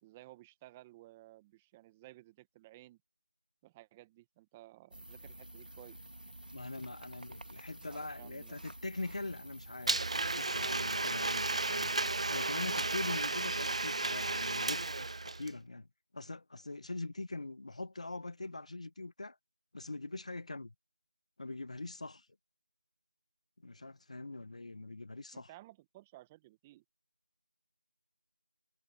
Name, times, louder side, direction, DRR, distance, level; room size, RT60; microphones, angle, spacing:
voice 1, 0.0-3.0 3.6-6.0 7.8-8.7 25.3-26.8, right 17 dB, 10° right, 1.6 m, -56 dB
sound 1, 4.9-13.3, right 1 dB, 85° right, 2.6 m, -50 dB
voice 2, 6.5-10.0 10.3-11.9 12.3-14.8 15.2-15.9 16.1-19.4 19.7-20.7 21.4-22.3 23.6-25.5, left 2 dB, 50° left, 1.3 m, -42 dB
Domestic sounds home sounds, 9.9-15.5, right 2 dB, 45° right, 0.4 m, -33 dB
figure-of-eight pair, 170°, 5 cm